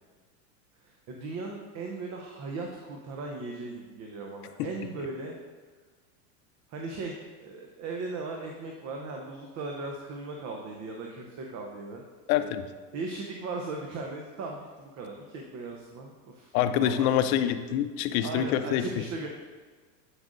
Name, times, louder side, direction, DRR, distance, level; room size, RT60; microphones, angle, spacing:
voice 1, 0.8-5.4 6.7-12.0 12.9-16.6 16.8-17.1 17.3-17.5 18.2-19.3, right 3 dB, 35° right, 1 dB, 0.7 m, -38 dB
voice 2, 12.3-12.6 16.5-19.0, left 10 dB, 60° left, 9 dB, 0.6 m, -26 dB
7.9 x 5.8 x 2.5 m, 1.5 s
hypercardioid pair, 110°, 49 cm